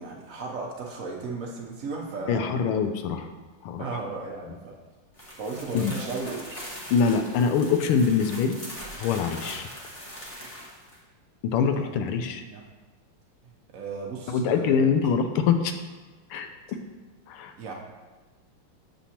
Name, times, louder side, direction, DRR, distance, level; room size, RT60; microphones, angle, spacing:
voice 1, 0.0-2.6 3.8-4.8 5.4-6.6 11.6-12.0 12.5-12.6 13.7-14.9 17.6-17.7, right 4 dB, 85° right, -1 dB, 0.7 m, -35 dB
voice 2, 2.3-3.3 3.6-3.8 5.7-5.9 6.9-8.6 9.0-9.7 11.4-12.4 14.3-15.8 16.3-16.8 17.3-17.5, left 6 dB, 85° left, 7 dB, 1.5 m, -24 dB
sound 1, 5.1-11.0, equal, 25° left, 0.8 m, -41 dB
7.1 x 7.1 x 2.8 m, 1.3 s
omnidirectional pair, 2.4 m